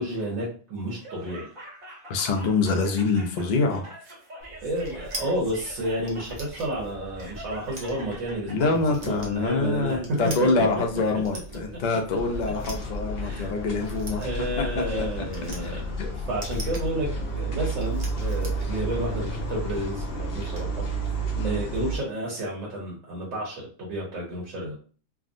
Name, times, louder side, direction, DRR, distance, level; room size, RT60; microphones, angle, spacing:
voice 1, 0.0-1.5 4.6-10.2 13.2-13.5 14.2-17.1 17.4-20.9 21.2-24.8, right 1 dB, 70° right, -3 dB, 1.3 m, -31 dB
Laughter, 0.9-8.6, right 1 dB, 90° right, 1.8 m, -45 dB
voice 2, 2.1-3.8 8.5-14.2 14.6-15.2 15.6-16.1 21.4-21.6, left 3 dB, 70° left, 3 dB, 0.4 m, -25 dB
sound 1, 4.4-20.6, right 1 dB, 50° right, 0.7 m, -43 dB
sound 2, 12.2-22.0, right 2 dB, 50° left, 0.9 m, -31 dB
3.5 x 2.0 x 2.5 m, 0.39 s
omnidirectional pair, 1.4 m